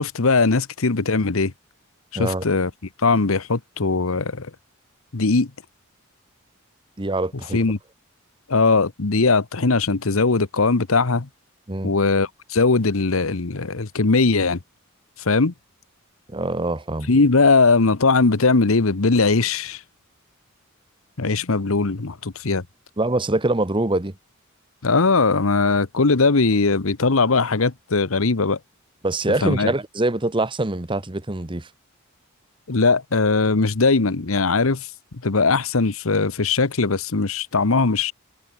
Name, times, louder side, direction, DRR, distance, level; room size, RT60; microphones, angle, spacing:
voice 1, 0.0-1.5 2.1-2.7 3.0-4.5 5.1-5.5 7.5-7.8 8.5-11.3 11.8-14.6 15.2-15.5 17.1-19.8 21.2-22.6 24.8-28.6 29.4-29.7 32.7-34.9 35.2-38.1, left 3 dB, 70° left, 1.1 m, -20 dB
voice 2, 7.0-7.6 11.7-11.9 16.3-17.1 23.0-24.1 29.0-31.7, right 2 dB, 25° right, 1.2 m, -24 dB
head